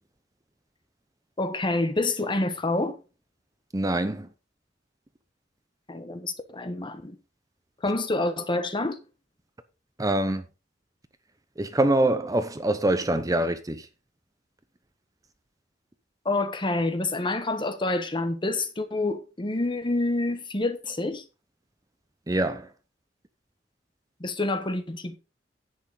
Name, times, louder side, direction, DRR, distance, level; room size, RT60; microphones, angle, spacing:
voice 1, 1.4-3.0 5.9-7.2 7.8-9.0 16.2-21.2 24.2-25.2, left 2 dB, 25° left, 1.3 m, -27 dB
voice 2, 3.7-4.3 10.0-10.5 11.6-13.9 22.3-22.7, right 1 dB, 20° right, 0.8 m, -24 dB
10.5 x 8.5 x 3.8 m
head